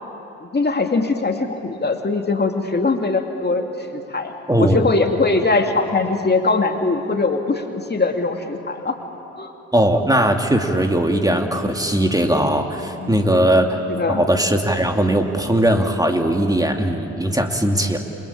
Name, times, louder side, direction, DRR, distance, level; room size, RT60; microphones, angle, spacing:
voice 1, 0.4-9.0 9.4-9.5 13.0-13.2 13.9-14.2, left 3 dB, 25° left, 4 dB, 2.5 m, -21 dB
voice 2, 4.5-4.8 9.7-13.8 14.1-18.0, right 1 dB, 10° right, 3 dB, 2.7 m, -19 dB
29.5 x 22.0 x 8.8 m, 2.8 s
hypercardioid pair, 50°, 36 cm